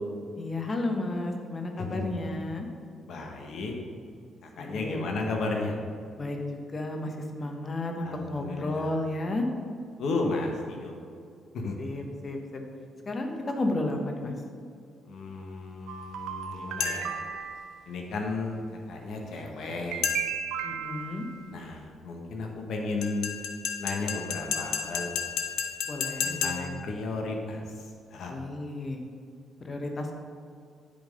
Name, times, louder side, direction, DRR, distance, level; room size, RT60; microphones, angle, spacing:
voice 1, 0.4-2.7 4.6-5.0 6.2-9.5 11.8-12.6 13.0-14.3 20.6-21.3 25.8-26.7 28.3-29.0 29.6-30.1, left 2 dB, 35° left, 3 dB, 1.1 m, -32 dB
voice 2, 1.8-2.2 3.1-3.7 4.4-5.8 8.0-8.9 10.0-11.0 11.5-11.8 15.0-17.3 17.9-20.1 21.5-23.3 23.8-25.1 26.2-28.3, left 3 dB, 70° left, 1 dB, 1.3 m, -34 dB
sound 1, 15.9-17.7 19.9-21.4, right 8 dB, 90° right, 0.7 m, -35 dB
sound 2, 16.8-17.2 20.0-20.5 23.0-26.8, left 7 dB, 85° left, 0.7 m, -32 dB
10.5 x 3.7 x 5.3 m, 2.4 s
cardioid pair, 90°, 0 cm